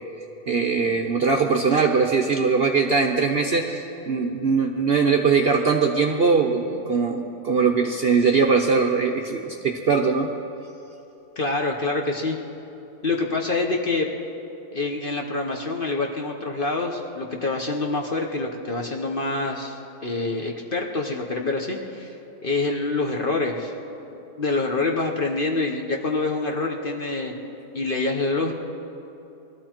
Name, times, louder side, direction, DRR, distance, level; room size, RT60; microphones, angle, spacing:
voice 1, 0.5-10.3, right 5 dB, 50° right, 2 dB, 0.7 m, -21 dB
voice 2, 11.4-12.4 13.0-14.2 14.7-22.1 22.4-23.7 24.1-27.3 27.7-28.5, left 3 dB, 40° left, 1 dB, 0.9 m, -26 dB
21.5 x 13.5 x 4.4 m, 2.9 s
omnidirectional pair, 1.7 m